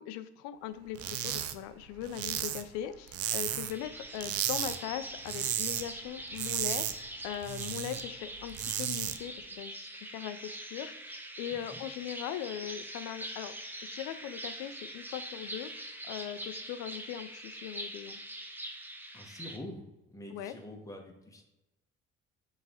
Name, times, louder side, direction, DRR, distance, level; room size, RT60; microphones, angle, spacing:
voice 1, 0.0-13.5 13.8-18.2 20.3-20.5, left 11 dB, 75° left, 12 dB, 0.4 m, -40 dB
sound 1, 0.9-1.5 1.8-3.8 4.2-4.8 5.1-5.8 6.2-8.0 8.4-9.2, right 11 dB, 55° right, 0.4 m, -34 dB
sound 2, 3.7-19.6, right 1 dB, 5° right, 0.6 m, -43 dB
voice 2, 19.1-21.4, left 1 dB, 10° left, 2 dB, 1.0 m, -45 dB
4.9 x 3.0 x 2.8 m, 0.98 s
hypercardioid pair, 70°, 30 cm